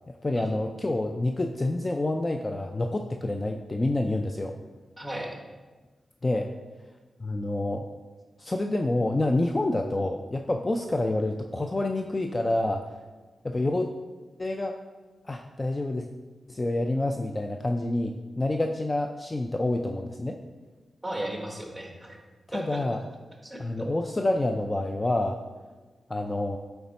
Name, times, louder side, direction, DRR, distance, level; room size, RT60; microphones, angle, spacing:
voice 1, 0.2-4.5 6.2-6.5 7.2-7.8 8.4-12.8 13.4-13.9 14.4-14.7 15.3-16.1 16.5-20.4 22.5-23.0 23.6-25.4 26.1-26.6, left 2 dB, 25° left, 4 dB, 0.3 m, -28 dB
voice 2, 5.0-5.4 21.0-22.2 22.5-22.8 23.4-23.6, right 1 dB, 5° right, 0 dB, 1.2 m, -35 dB
8.4 x 3.4 x 4.1 m, 1.3 s
wide cardioid pair, 95°, 0 cm